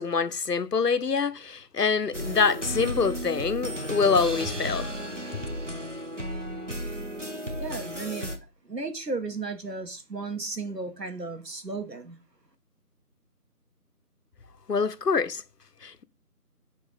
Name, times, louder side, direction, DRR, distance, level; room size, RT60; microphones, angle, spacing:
voice 1, 0.0-4.9 14.7-15.4 15.8-16.0, left 5 dB, 80° left, 0.7 m, -25 dB
sound 1, 2.1-8.4, equal, 50° right, 0.9 m, -34 dB
voice 2, 7.6-8.3 8.7-12.1, right 3 dB, 80° right, 1.6 m, -34 dB
7.2 x 3.2 x 5.1 m
figure-of-eight pair, 180°, 48 cm